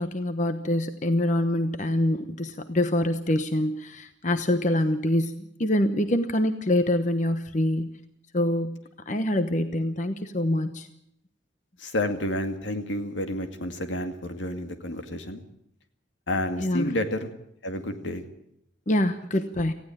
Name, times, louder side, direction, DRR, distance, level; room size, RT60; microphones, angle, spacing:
voice 1, 0.0-7.9 8.3-8.8 9.1-10.9 16.6-16.9 18.9-19.7, left 1 dB, 40° left, 9 dB, 1.1 m, -25 dB
voice 2, 11.8-15.4 16.3-17.3 17.6-18.2, left 1 dB, 80° left, 7 dB, 2.3 m, -30 dB
19.0 x 15.5 x 8.8 m, 0.75 s
head